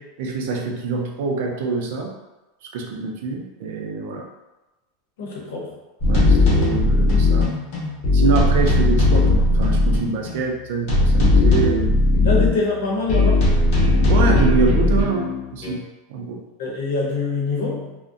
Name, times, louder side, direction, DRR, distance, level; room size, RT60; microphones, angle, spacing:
voice 1, 0.0-2.1 2.6-4.3 6.1-7.6 8.1-11.9 12.2-12.3 14.1-16.4, right 5 dB, 60° right, 2 dB, 0.4 m, -25 dB
voice 2, 5.2-5.8 12.2-13.6 16.6-18.0, left 3 dB, 80° left, -2 dB, 0.7 m, -24 dB
sound 1, 6.0-10.4 10.9-12.5 13.1-15.7, left 2 dB, 40° left, 0.8 m, -17 dB
2.5 x 2.0 x 2.5 m, 1.0 s
supercardioid pair, 175°, 0 cm